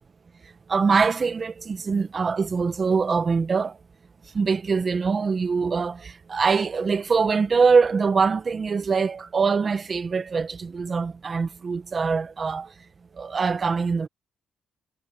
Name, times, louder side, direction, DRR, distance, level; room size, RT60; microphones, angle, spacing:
voice 1, 0.7-3.8 4.3-12.7 13.2-14.1, right 5 dB, 40° right, 1.6 m, -23 dB
cardioid pair, 90°, 0 cm